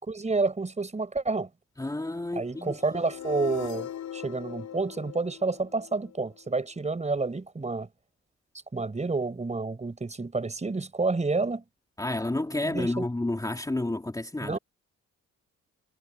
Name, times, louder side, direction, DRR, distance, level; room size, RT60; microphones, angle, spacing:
voice 1, 0.1-1.5 2.3-7.9 8.7-11.6 12.6-13.0 14.4-14.6, right 3 dB, 25° right, 4.7 m, -29 dB
voice 2, 1.8-2.7 12.0-14.6, left 2 dB, 10° left, 2.9 m, -30 dB
sound 1, 2.5-6.6, left 10 dB, 70° left, 6.6 m, -40 dB
cardioid pair, 90°, 30 cm